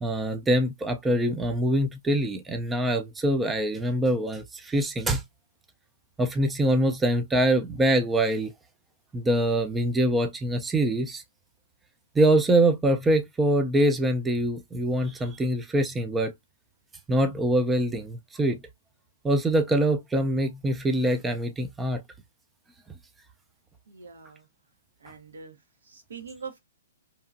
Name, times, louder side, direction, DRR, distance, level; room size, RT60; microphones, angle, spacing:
voice 1, 0.0-5.2 6.2-8.5 9.1-11.2 12.2-16.3 17.1-18.6 19.2-22.0, right 1 dB, 10° right, 0.3 m, -24 dB
voice 2, 23.9-24.4 25.0-25.5 26.1-26.6, right 5 dB, 85° right, 1.0 m, -42 dB
2.8 x 2.4 x 2.4 m
hypercardioid pair, 150°, 0 cm